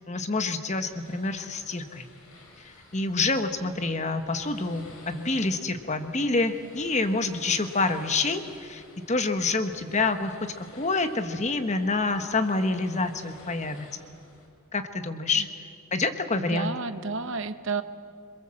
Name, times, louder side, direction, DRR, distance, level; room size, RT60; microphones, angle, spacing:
voice 1, 0.0-2.1 2.6-13.9 14.7-15.5 15.9-16.7, left 3 dB, 30° left, 8 dB, 1.2 m, -27 dB
sound 1, 0.8-14.5, left 2 dB, 70° left, 5.1 m, -52 dB
voice 2, 16.3-17.8, right 4 dB, 60° right, 10 dB, 1.0 m, -31 dB
26.5 x 22.5 x 7.7 m, 2.4 s
head